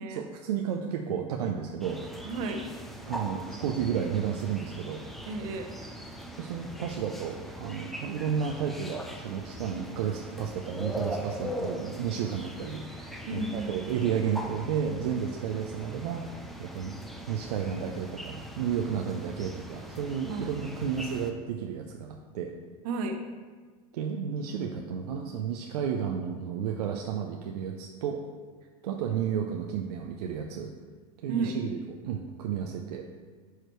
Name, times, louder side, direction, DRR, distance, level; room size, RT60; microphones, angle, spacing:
voice 1, 0.1-2.0 3.1-5.0 6.4-16.9 17.3-22.5 23.9-28.2 28.8-30.7 31.2-33.1, right 7 dB, 85° right, 2 dB, 0.6 m, -32 dB
sound 1, 1.8-21.3, equal, ahead, 0.6 m, -41 dB
voice 2, 2.2-2.6 5.3-5.7 13.3-13.9 20.3-20.5 22.8-23.2 31.3-31.5, right 3 dB, 65° right, 5 dB, 1.0 m, -33 dB
9.0 x 4.9 x 3.1 m, 1.5 s
supercardioid pair, 120°, 20 cm